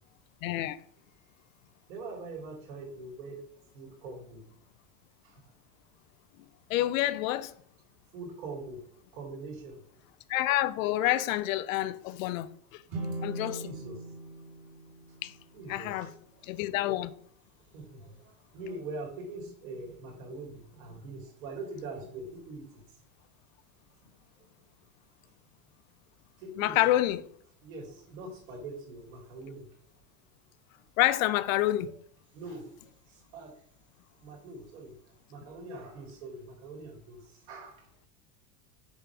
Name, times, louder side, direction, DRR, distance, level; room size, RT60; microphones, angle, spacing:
voice 1, 0.4-0.8 6.7-7.5 10.3-12.8 13.2-13.7 15.2-15.3 15.7-16.1 16.4-17.1 26.6-27.3 31.0-31.9, left 15 dB, 60° left, 0.6 m, -28 dB
voice 2, 1.9-3.4 3.7-4.4 5.2-5.4 8.1-8.8 9.1-9.8 13.6-14.0 15.5-16.1 16.5-16.6 17.7-22.8 26.4-26.8 27.6-29.7 32.3-33.5 34.2-34.9 35.3-37.9, right 2 dB, 60° right, 3.2 m, -43 dB
sound 1, 12.9-16.1, right 2 dB, 30° right, 1.7 m, -40 dB
6.8 x 3.6 x 6.0 m
supercardioid pair, 175°, 46 cm